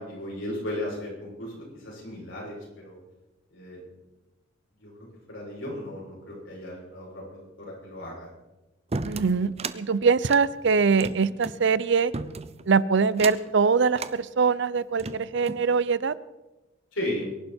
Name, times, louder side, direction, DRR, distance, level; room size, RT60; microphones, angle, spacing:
voice 1, 0.0-3.0 3.5-3.8 4.8-4.9 5.3-8.3 16.9-17.3, left 1 dB, 85° left, -4 dB, 6.9 m, -35 dB
sound 1, 8.9-9.8 10.2-11.6 12.1-12.6 13.1-13.5 13.9-14.2 14.8-15.7, right 3 dB, 35° right, 0.7 m, -34 dB
voice 2, 9.0-12.1 12.7-16.1, right 5 dB, 65° right, 18 dB, 0.6 m, -23 dB
24.0 x 11.0 x 4.4 m, 1.1 s
head